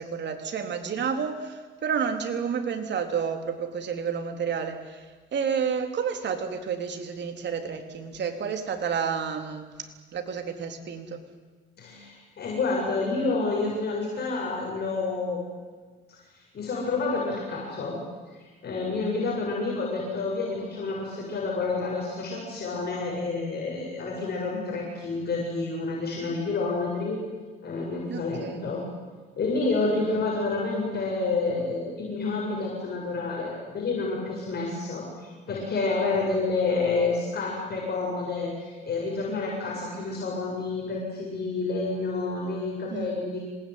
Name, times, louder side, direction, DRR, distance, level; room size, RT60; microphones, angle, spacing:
voice 1, 0.0-11.2 28.1-28.6 42.9-43.1, right 6 dB, 60° right, 5 dB, 3.9 m, -30 dB
voice 2, 11.8-15.4 16.1-16.2 16.5-18.0 18.3-27.2 27.6-28.8 29.3-43.4, left 3 dB, 55° left, -2 dB, 7.8 m, -29 dB
26.5 x 20.5 x 9.7 m, 1.4 s
cardioid pair, 90°, 20 cm